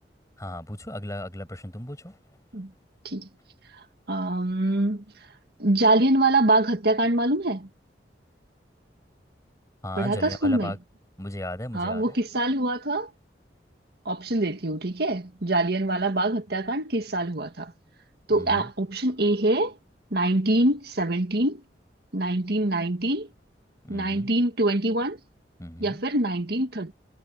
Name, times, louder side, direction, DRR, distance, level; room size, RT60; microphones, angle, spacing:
voice 1, 0.4-2.2 9.8-10.8 11.2-12.2 18.3-18.7 23.8-24.3 25.6-26.0, left 1 dB, 20° left, 7.2 m, -36 dB
voice 2, 4.1-5.0 5.6-7.7 10.0-10.7 11.7-13.1 14.1-17.7 18.3-19.7 20.1-21.6 22.1-23.3 23.9-25.2 25.8-26.9, right 2 dB, 60° right, 1.9 m, -24 dB
head